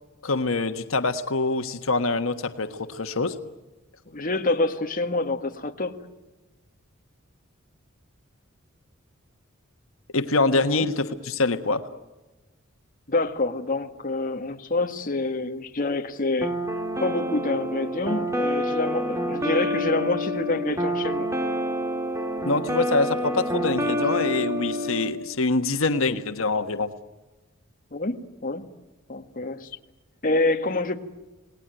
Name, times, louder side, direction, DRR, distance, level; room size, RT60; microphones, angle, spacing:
voice 1, 0.2-3.4 10.1-11.8 22.4-26.9, left 3 dB, 85° left, 8 dB, 1.4 m, -25 dB
voice 2, 4.1-6.0 10.7-10.9 13.1-16.5 17.0-21.3 27.9-28.6 29.1-29.7 30.2-31.0, left 2 dB, 45° left, 5 dB, 1.8 m, -27 dB
sound 1, 16.4-25.1, equal, 15° right, 2.5 m, -27 dB
28.0 x 19.5 x 9.1 m, 1.1 s
head